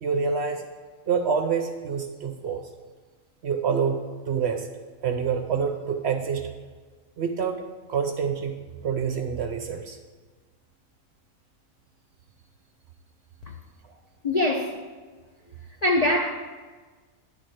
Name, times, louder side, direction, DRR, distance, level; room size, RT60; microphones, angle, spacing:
voice 1, 0.0-0.7 1.1-2.6 3.4-4.7 5.0-6.5 7.2-7.6 7.9-8.5 8.8-10.0, right 6 dB, 60° right, 0.7 m, -27 dB
voice 2, 14.2-14.8 15.8-16.3, left 1 dB, 55° left, 0.4 m, -23 dB
10.5 x 4.4 x 6.4 m
omnidirectional pair, 1.5 m